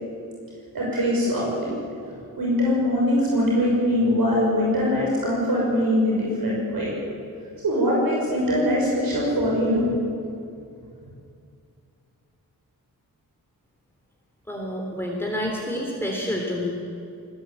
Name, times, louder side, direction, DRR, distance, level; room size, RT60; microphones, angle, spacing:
voice 1, 0.7-1.7 2.4-6.9 7.6-9.9, equal, 70° right, -4 dB, 6.3 m, -22 dB
voice 2, 14.5-16.7, left 1 dB, 5° left, -1 dB, 3.5 m, -28 dB
20.0 x 20.0 x 8.9 m, 2.5 s
wide cardioid pair, 95°, 36 cm